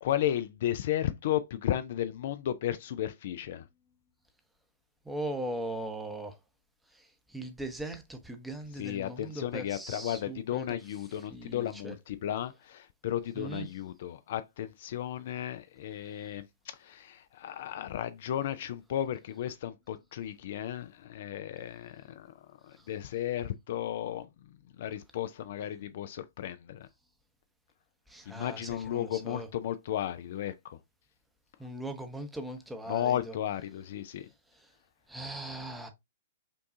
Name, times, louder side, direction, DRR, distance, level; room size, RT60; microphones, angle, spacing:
voice 1, 0.0-3.6 8.8-16.5 16.8-22.3 22.7-24.3 24.8-26.9 28.3-30.8 32.9-34.3, left 11 dB, 55° left, 0.4 m, -34 dB
voice 2, 5.1-6.4 7.3-10.8 11.3-11.9 13.4-13.7 28.1-29.5 31.6-33.3 35.1-35.9, right 1 dB, 5° right, 0.7 m, -39 dB
5.2 x 2.3 x 2.6 m
figure-of-eight pair, 115°, 0 cm